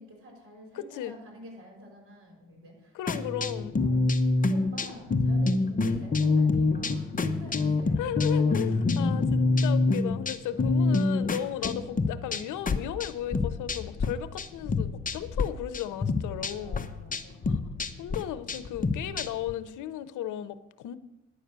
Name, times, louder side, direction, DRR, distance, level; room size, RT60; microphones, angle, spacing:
voice 1, 0.0-3.5 3.8-4.1 4.4-8.7 16.3-17.6, right 1 dB, 45° right, 0 dB, 5.4 m, -48 dB
voice 2, 0.7-1.2 2.9-3.8 5.8-6.0 8.0-16.9 17.5-17.7 18.0-21.0, left 11 dB, 85° left, 14 dB, 0.8 m, -35 dB
sound 1, 3.1-14.1 14.4-15.4 15.7-19.5, left 3 dB, 25° left, 0.9 m, -26 dB
10.5 x 6.5 x 8.0 m, 0.94 s
cardioid pair, 90°, 30 cm